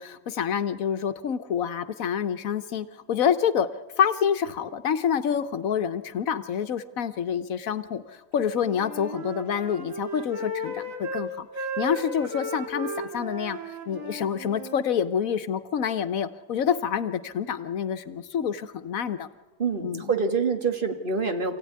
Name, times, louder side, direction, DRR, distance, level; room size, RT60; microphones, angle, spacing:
voice 1, 0.0-3.7 4.0-8.0 8.3-11.5 11.8-13.6 13.9-19.3 19.8-20.1, left 8 dB, 85° left, 11 dB, 1.4 m, -27 dB
Wind instrument woodwind instrument, 8.4-11.3 11.5-14.8, right 1 dB, 75° right, 3.1 m, -35 dB
voice 2, 19.6-21.6, right 5 dB, 40° right, 5 dB, 1.9 m, -26 dB
27.0 x 16.0 x 9.6 m, 1.4 s
omnidirectional pair, 1.4 m